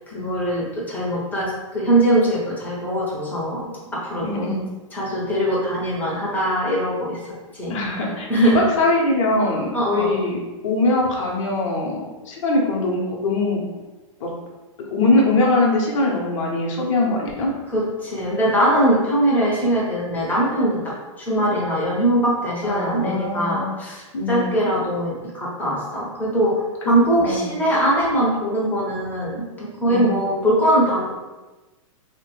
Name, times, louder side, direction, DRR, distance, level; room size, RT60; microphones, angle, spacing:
voice 1, 0.1-4.5 4.9-7.2 7.5-7.7 8.3-8.6 9.7-10.2 17.7-24.0 24.3-31.1, right 1 dB, 10° left, -6 dB, 0.8 m, -21 dB
voice 2, 4.2-4.6 7.7-11.9 12.3-13.6 14.2-14.3 14.9-17.5 22.6-23.7 24.1-24.5 26.8-26.9 27.2-27.5 29.9-30.1, left 2 dB, 65° left, -2 dB, 0.9 m, -22 dB
3.2 x 2.1 x 3.1 m, 1.2 s
hypercardioid pair, 140°, 17 cm